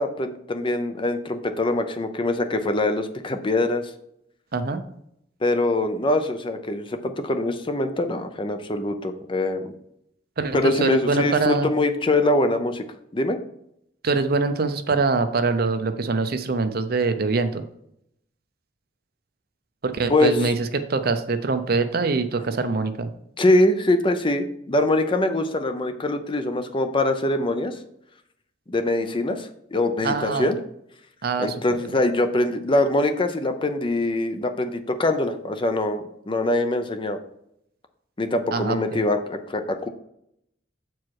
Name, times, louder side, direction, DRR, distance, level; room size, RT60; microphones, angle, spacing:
voice 1, 0.0-3.9 5.4-9.7 10.5-12.8 13.1-13.4 20.1-20.3 23.4-27.8 28.7-30.6 31.4-37.2 38.2-39.9, left 2 dB, 25° left, 8 dB, 0.6 m, -23 dB
voice 2, 4.5-4.8 10.4-11.7 14.0-17.6 19.8-23.1 30.0-30.5 31.2-31.8 38.5-39.0, right 3 dB, 55° right, 9 dB, 0.6 m, -24 dB
7.3 x 4.6 x 4.6 m, 0.74 s
head